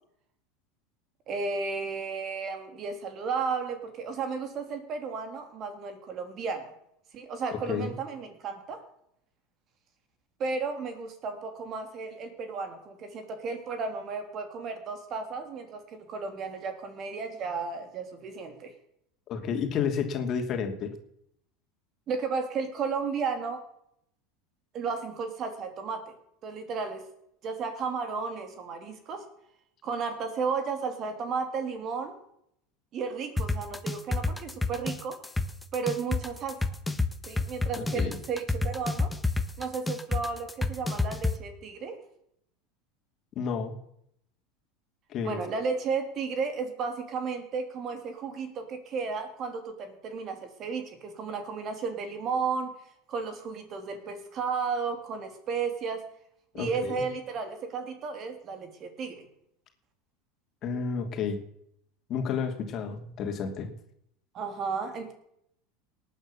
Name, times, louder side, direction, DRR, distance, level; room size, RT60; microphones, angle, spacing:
voice 1, 1.3-6.7 7.1-8.8 10.4-18.7 22.1-23.7 24.7-26.1 26.4-27.0 27.4-29.3 29.8-32.1 32.9-35.2 35.7-36.6 37.3-39.1 39.6-42.0 45.2-52.7 53.1-56.0 56.5-59.2 64.3-65.1, right 5 dB, 45° right, 7 dB, 3.2 m, -33 dB
voice 2, 7.5-7.9 19.3-20.9 37.8-38.2 43.4-43.7 45.1-45.4 56.5-57.0 60.6-61.4 62.1-63.7, left 6 dB, 45° left, 4 dB, 2.7 m, -31 dB
sound 1, 33.4-41.3, left 3 dB, 10° left, 1.3 m, -28 dB
18.5 x 9.3 x 6.9 m, 0.73 s
hypercardioid pair, 95°, 0 cm